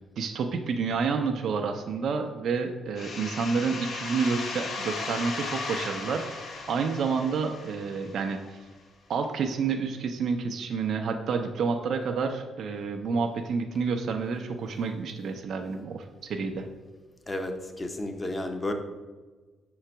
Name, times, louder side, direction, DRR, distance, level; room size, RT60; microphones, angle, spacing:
voice 1, 0.2-8.6 9.1-16.7, right 5 dB, 60° right, 4 dB, 0.5 m, -29 dB
sound 1, 3.0-8.5, left 3 dB, 60° left, 0.7 m, -36 dB
voice 2, 17.3-18.7, left 1 dB, 20° left, 6 dB, 0.7 m, -32 dB
5.7 x 3.9 x 4.5 m, 1.3 s
cardioid pair, 90°, 0 cm